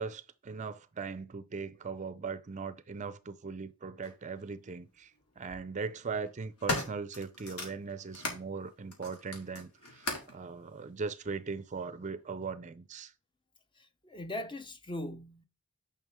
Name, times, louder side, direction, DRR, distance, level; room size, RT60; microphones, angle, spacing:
voice 1, 0.0-13.1, right 5 dB, 35° right, 0.4 m, -39 dB
sound 1, 4.0-4.1 5.2-5.6 6.1-8.4 8.9-10.4 11.2-11.3, left 2 dB, 90° left, 2.3 m, -38 dB
voice 2, 14.0-15.5, left 1 dB, 20° left, 0.6 m, -39 dB
9.3 x 5.8 x 3.6 m
head